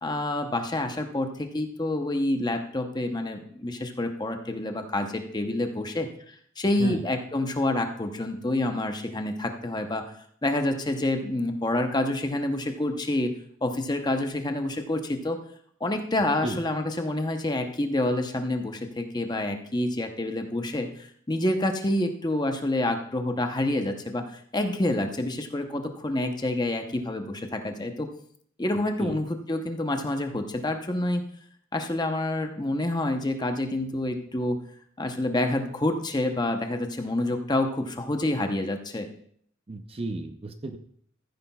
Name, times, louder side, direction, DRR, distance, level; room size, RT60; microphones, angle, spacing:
voice 1, 0.0-6.1 6.6-10.0 10.4-13.3 13.6-15.4 15.8-24.2 24.5-28.1 28.6-31.2 31.7-34.6 35.0-39.1, left 1 dB, 20° left, 5 dB, 0.7 m, -28 dB
voice 2, 39.7-40.8, right 2 dB, 30° right, 7 dB, 0.6 m, -33 dB
14.5 x 9.6 x 2.3 m, 0.62 s
head